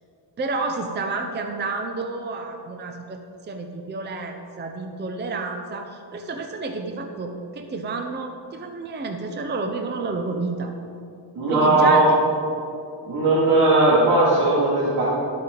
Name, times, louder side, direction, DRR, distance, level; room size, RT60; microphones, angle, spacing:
voice 1, 0.4-3.2 3.4-10.7 11.5-12.2, right 3 dB, 25° right, 5 dB, 0.6 m, -30 dB
voice 2, 11.3-12.0 13.1-15.0, right 2 dB, 80° right, -9 dB, 2.6 m, -18 dB
12.0 x 8.6 x 3.9 m, 2.6 s
cardioid pair, 140°, 44 cm